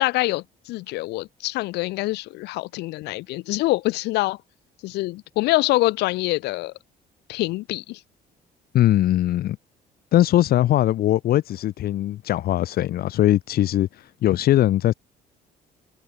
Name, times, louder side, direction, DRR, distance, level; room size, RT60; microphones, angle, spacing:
voice 1, 0.0-4.4 4.8-6.7 7.3-8.0, left 20 dB, 85° left, 0.8 m, -25 dB
voice 2, 8.7-9.6 10.1-14.9, left 13 dB, 65° left, 1.3 m, -20 dB
cardioid pair, 110°, 17 cm